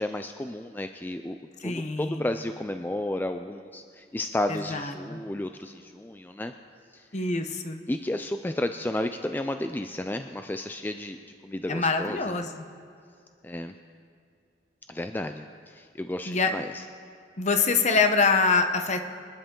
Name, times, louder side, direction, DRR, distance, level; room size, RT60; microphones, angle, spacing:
voice 1, 0.0-1.4 1.6-6.5 6.9-7.1 7.9-11.2 11.4-12.3 13.4-13.7 14.9-16.8, left 1 dB, 10° left, 7 dB, 0.4 m, -32 dB
voice 2, 1.6-2.2 4.5-5.2 7.1-7.8 11.7-12.5 16.3-16.5 17.4-19.0, left 4 dB, 40° left, 7 dB, 1.0 m, -25 dB
25.0 x 10.5 x 3.8 m, 2.3 s
head